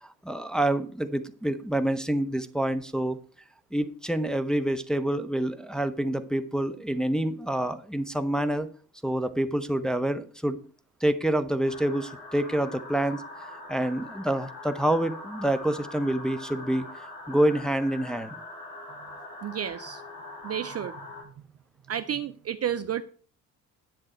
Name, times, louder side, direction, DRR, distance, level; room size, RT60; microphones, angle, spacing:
voice 1, 0.0-3.2 3.7-8.7 9.0-10.6 11.0-13.2 13.7-16.9 17.3-18.3, right 1 dB, ahead, 9 dB, 0.8 m, -27 dB
sound 1, 11.6-21.2, left 2 dB, 90° left, 3.3 m, -42 dB
voice 2, 19.4-20.0 20.4-21.0 21.9-23.0, right 9 dB, 30° right, 11 dB, 0.6 m, -31 dB
9.8 x 7.6 x 4.4 m, 0.43 s
figure-of-eight pair, 55°, 48 cm